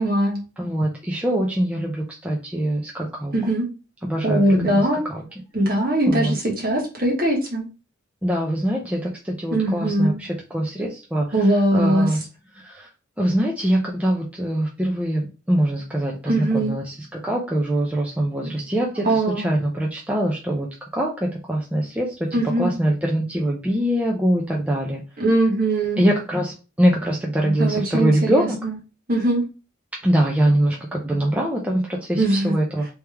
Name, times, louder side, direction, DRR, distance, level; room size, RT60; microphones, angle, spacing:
voice 1, 0.0-0.4 3.3-3.6 4.2-5.0 5.5-7.6 9.5-10.2 11.3-12.1 16.3-16.8 18.4-18.5 19.0-19.5 22.3-22.7 25.2-26.0 27.4-28.7 29.1-29.5 32.1-32.5, right 1 dB, 45° right, -1 dB, 1.4 m, -21 dB
voice 2, 0.6-3.3 4.1-5.2 6.1-6.4 8.2-12.2 12.6-12.9 13.2-20.7 20.9-25.0 26.0-28.6 30.0-32.9, right 1 dB, 5° right, -1 dB, 0.5 m, -23 dB
3.4 x 3.1 x 3.4 m, 0.32 s
head